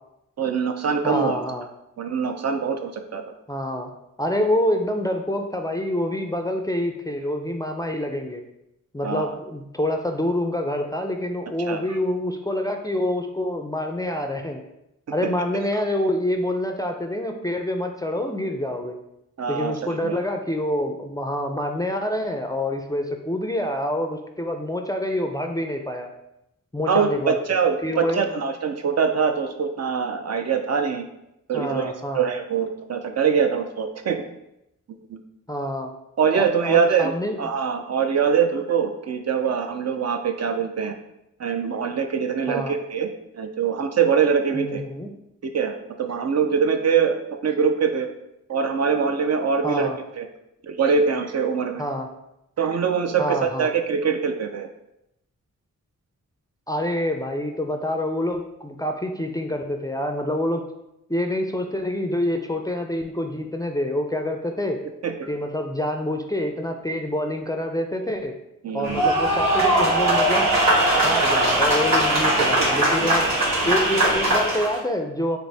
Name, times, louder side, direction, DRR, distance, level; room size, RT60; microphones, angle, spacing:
voice 1, 0.4-1.3 2.0-3.2 9.0-9.3 11.7-11.8 15.2-15.3 19.4-20.2 26.9-31.1 31.5-34.2 34.9-35.2 36.2-37.1 37.4-41.0 41.4-43.1 43.4-44.8 45.4-47.2 47.4-48.1 48.5-49.9 50.2-50.3 50.6-51.8 52.6-54.7 65.0-65.3 68.6-69.0 72.4-72.5, right 6 dB, 50° right, 6 dB, 0.4 m, -23 dB
voice 2, 1.0-1.7 3.5-3.9 4.2-8.4 8.9-14.6 15.1-19.0 19.5-26.1 26.7-27.4 27.8-28.4 31.5-32.3 35.5-35.9 36.3-37.4 42.5-42.8 44.5-45.1 49.6-50.0 51.8-52.1 53.2-53.7 56.7-60.6 61.1-64.8 65.3-68.3 68.7-70.5 71.0-73.3 73.7-75.4, left 1 dB, 10° left, 3 dB, 0.4 m, -26 dB
sound 1, 68.8-74.8, right 1 dB, 80° right, 1.4 m, -20 dB
5.0 x 2.0 x 3.3 m, 0.85 s
cardioid pair, 60°, 33 cm